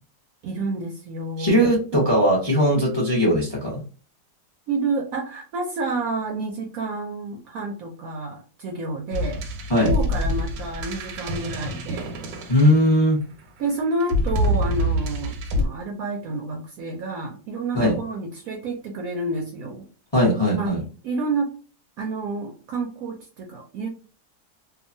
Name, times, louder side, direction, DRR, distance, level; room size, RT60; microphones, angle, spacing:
voice 1, 0.4-1.6 1.9-2.0 4.7-9.4 9.8-12.1 13.6-19.9 20.5-21.5 22.0-23.9, right 3 dB, 70° right, 1 dB, 0.9 m, -29 dB
voice 2, 1.4-3.8 9.7-9.9 12.5-13.2 17.7-17.9 20.1-20.8, equal, 25° left, -2 dB, 0.5 m, -19 dB
sound 1, 9.1-13.2 14.0-15.7, equal, 90° right, 1.3 m, -26 dB
2.9 x 2.3 x 2.5 m, 0.39 s
omnidirectional pair, 1.9 m